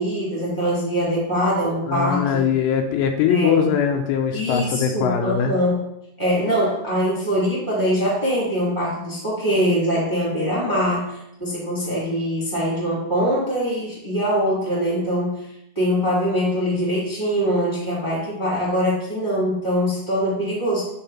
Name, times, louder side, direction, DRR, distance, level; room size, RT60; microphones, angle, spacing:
voice 1, 0.0-2.5 3.3-3.7 4.3-5.8 6.2-15.4 15.7-20.9, equal, 10° right, -6 dB, 1.5 m, -23 dB
voice 2, 1.9-5.5, left 7 dB, 85° left, 4 dB, 2.7 m, -21 dB
9.2 x 3.7 x 4.2 m, 0.78 s
omnidirectional pair, 5.2 m